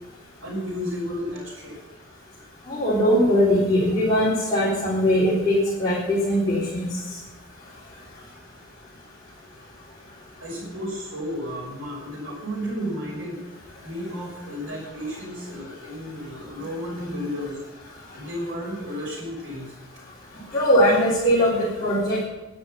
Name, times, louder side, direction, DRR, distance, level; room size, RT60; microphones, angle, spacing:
voice 1, 0.4-1.8 10.4-13.4 13.8-17.6 18.1-19.7, equal, 70° right, -3 dB, 5.9 m, -32 dB
voice 2, 2.7-6.9 20.5-22.2, equal, 20° left, -9 dB, 4.0 m, -20 dB
12.0 x 10.5 x 7.1 m, 1.1 s
head